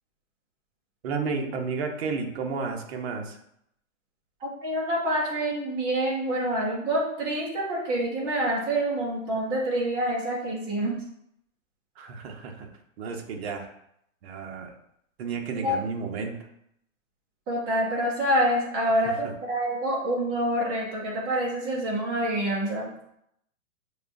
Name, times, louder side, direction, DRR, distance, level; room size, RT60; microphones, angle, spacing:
voice 1, 1.0-3.4 12.0-12.7 13.0-13.7 14.2-14.7 15.2-16.4 19.0-19.1, right 4 dB, 50° right, 3 dB, 0.8 m, -32 dB
voice 2, 4.4-11.0 15.5-15.8 17.5-22.9, right 1 dB, 10° right, -4 dB, 0.4 m, -27 dB
6.5 x 2.3 x 2.5 m, 0.74 s
hypercardioid pair, 150°, 41 cm